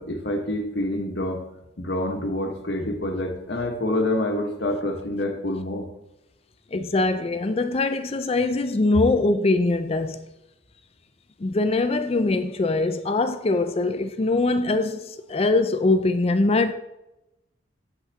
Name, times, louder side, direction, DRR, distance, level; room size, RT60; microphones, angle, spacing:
voice 1, 0.0-1.4 1.8-5.9, left 1 dB, 60° left, 1.4 m, -27 dB
voice 2, 6.7-10.3 11.4-16.7, left 2 dB, 30° left, 0.4 m, -22 dB
8.7 x 7.4 x 3.5 m
head